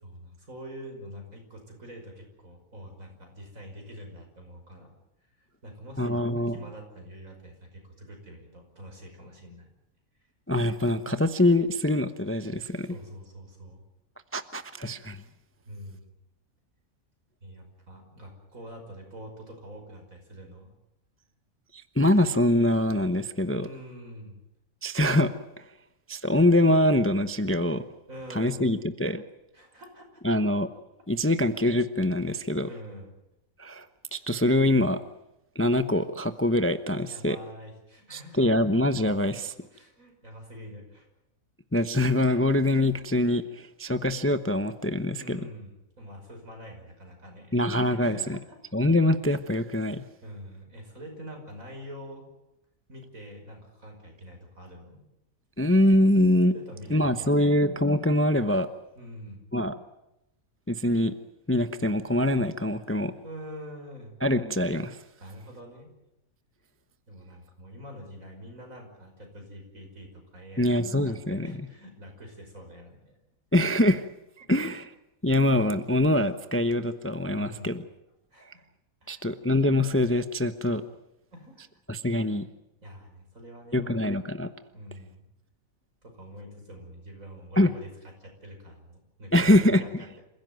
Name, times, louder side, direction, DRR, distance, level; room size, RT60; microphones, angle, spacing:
voice 1, 0.0-4.9 5.2-9.7 12.8-13.8 15.7-16.1 17.4-20.7 23.5-24.4 28.1-28.9 29.5-30.2 32.6-33.1 37.1-38.4 39.7-41.1 44.9-47.6 48.0-48.6 50.2-52.3 52.9-55.0 56.5-57.7 59.0-59.4 63.2-64.2 65.2-65.9 67.1-70.7 71.0-73.2 74.4-74.5 77.3-77.8 78.3-78.7 79.0-79.3 81.3-81.6 82.8-84.2 84.7-85.3 86.0-87.9 88.2-90.2, equal, 70° right, 3 dB, 6.1 m, -45 dB
voice 2, 6.0-6.5 10.5-12.9 14.3-15.2 21.7-23.7 24.8-25.7 26.1-27.8 28.3-29.2 30.2-30.7 31.1-32.7 33.6-33.9 34.1-35.0 35.5-37.4 38.1-39.5 41.7-45.4 47.5-48.4 48.7-50.0 55.6-56.5 56.9-58.7 59.5-59.7 60.7-61.1 61.5-63.1 64.2-65.0 70.6-71.5 73.5-74.0 74.4-74.9 75.2-77.8 79.1-80.8 81.9-82.5 83.7-84.5 87.6-87.7 89.3-90.0, left 1 dB, 10° left, 10 dB, 0.7 m, -24 dB
28.0 x 16.0 x 9.2 m, 0.88 s
omnidirectional pair, 1.5 m